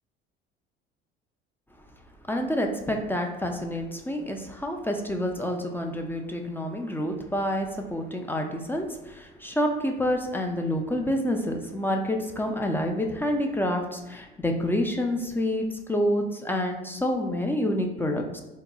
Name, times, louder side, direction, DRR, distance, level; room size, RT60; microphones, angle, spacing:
voice 1, 2.3-18.4, left 1 dB, 10° left, 2 dB, 0.3 m, -28 dB
3.8 x 2.7 x 2.2 m, 0.99 s
hypercardioid pair, 65°, 29 cm